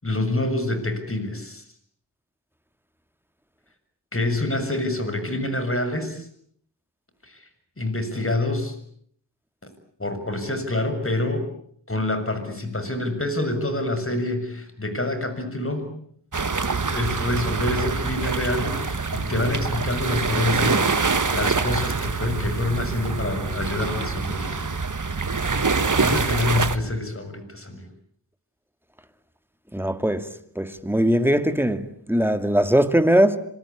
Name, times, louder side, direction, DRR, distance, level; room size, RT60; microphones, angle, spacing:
voice 1, 0.0-1.6 4.1-6.3 7.2-7.4 7.8-8.8 10.0-11.5 11.9-15.9 16.9-24.8 25.6-27.9, left 2 dB, 30° left, 6.9 m, -27 dB
sound 1, 16.3-26.8, right 4 dB, 45° right, 1.9 m, -25 dB
voice 2, 29.7-30.3 30.6-33.4, equal, 5° right, 2.5 m, -20 dB
26.0 x 24.0 x 8.6 m
cardioid pair, 45°, 43 cm